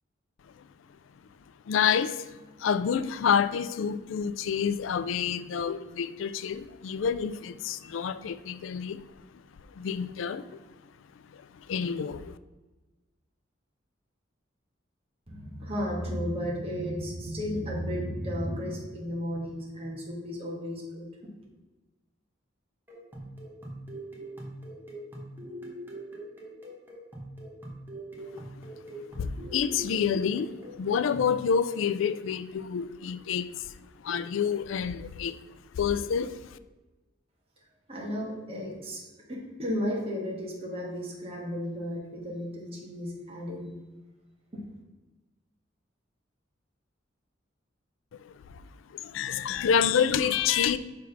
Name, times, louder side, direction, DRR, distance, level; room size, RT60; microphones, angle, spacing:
voice 1, 1.7-2.3 2.6-9.0 9.8-10.6 11.6-12.3 28.3-28.4 29.2-33.7 34.0-35.4 35.7-36.6 48.2-48.6 48.9-50.8, left 7 dB, 90° left, 13 dB, 0.4 m, -28 dB
voice 2, 15.3-21.1 37.9-39.0 39.3-43.8 44.5-44.6, equal, 30° right, -3 dB, 1.4 m, -34 dB
sound 1, 22.9-31.4, right 1 dB, 10° right, 1.2 m, -43 dB
6.3 x 3.5 x 5.8 m, 1.1 s
head